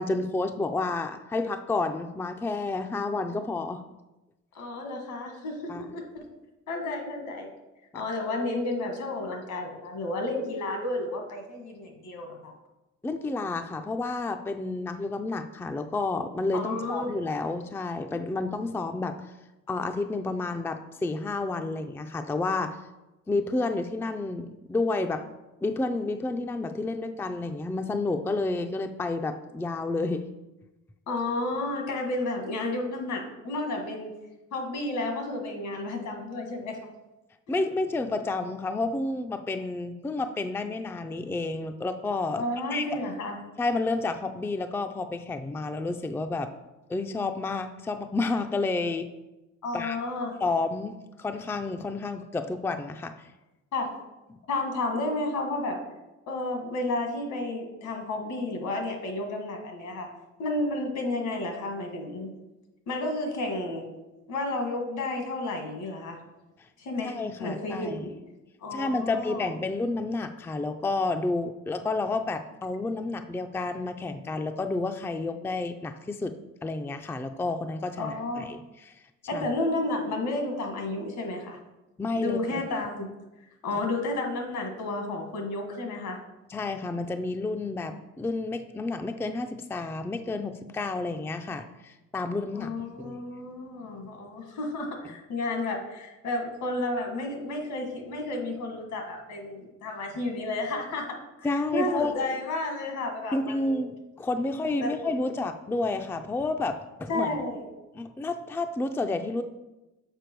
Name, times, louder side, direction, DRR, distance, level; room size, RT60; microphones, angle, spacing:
voice 1, 0.0-3.8 5.7-5.8 7.9-8.0 13.0-19.2 19.7-22.8 23.3-25.3 25.6-30.3 37.5-42.9 43.6-46.5 46.9-49.1 49.7-50.0 50.4-53.3 67.0-68.0 68.7-76.3 76.6-78.9 79.3-79.4 82.0-82.6 86.5-92.7 93.0-93.2 101.4-102.2 103.3-107.4 107.9-109.4, left 3 dB, 10° left, 7 dB, 0.4 m, -30 dB
voice 2, 4.5-5.6 5.9-6.2 6.7-7.5 7.9-12.5 16.5-17.2 31.1-34.1 34.5-36.8 37.5-37.6 42.4-43.4 49.6-50.3 53.7-53.9 54.5-55.8 56.3-60.1 60.4-62.3 62.9-63.9 64.3-66.2 66.8-68.1 68.6-69.5 78.0-78.5 79.3-81.6 82.2-83.1 83.6-86.2 92.5-103.8 104.8-104.9 107.1-107.7, left 2 dB, 75° left, 3 dB, 1.7 m, -32 dB
6.8 x 4.7 x 4.5 m, 1.0 s
cardioid pair, 90°, 30 cm